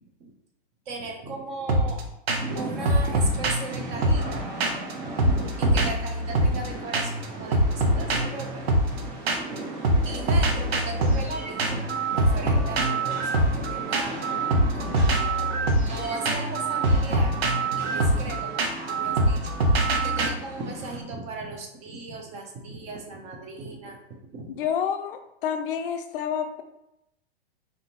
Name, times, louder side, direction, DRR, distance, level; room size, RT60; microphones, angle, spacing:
voice 1, 0.9-2.0 2.5-4.7 5.0-5.2 5.6-9.0 9.5-9.6 10.0-11.8 12.1-17.4 17.8-24.0 24.3-24.5, right 3 dB, 20° right, 2 dB, 0.6 m, -37 dB
sound 1, 1.7-2.0 2.3-2.6 2.8-4.9 5.2-6.7 6.9-7.2 7.5-9.6 9.8-20.3, right 1 dB, 80° right, 0.9 m, -24 dB
Rain, 2.4-21.0, right 2 dB, 40° right, 1.3 m, -37 dB
voice 2, 24.5-26.6, left 8 dB, 65° left, 6 dB, 0.5 m, -29 dB
4.2 x 3.5 x 2.8 m, 0.85 s
hypercardioid pair, 140°, 31 cm